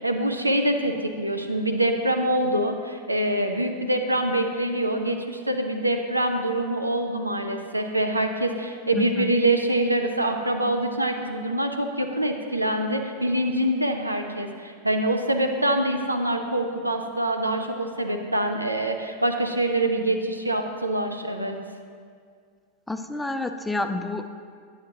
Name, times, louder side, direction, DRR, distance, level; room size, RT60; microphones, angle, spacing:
voice 1, 0.0-21.6, right 1 dB, 85° right, 5 dB, 0.5 m, -25 dB
voice 2, 8.9-9.3 22.9-24.3, left 2 dB, 5° left, 7 dB, 0.3 m, -29 dB
9.5 x 7.1 x 2.8 m, 2.1 s
figure-of-eight pair, 90°, 0 cm